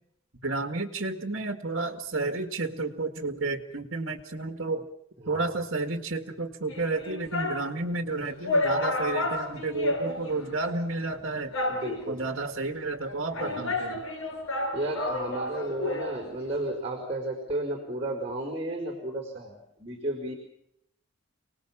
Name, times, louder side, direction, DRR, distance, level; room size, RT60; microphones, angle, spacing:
voice 1, 0.4-4.8 5.3-11.5 12.1-14.0, right 3 dB, 60° right, 5 dB, 2.1 m, -31 dB
sound 1, 6.7-7.7 8.1-8.2 8.4-10.5 10.8-10.9 11.5-12.2 13.0-16.2 16.4-16.5, left 2 dB, 75° left, 7.2 m, -30 dB
voice 2, 11.7-12.2 13.4-13.6 14.7-20.3, right 1 dB, 30° right, 3 dB, 4.9 m, -33 dB
30.0 x 20.0 x 7.4 m, 0.77 s
head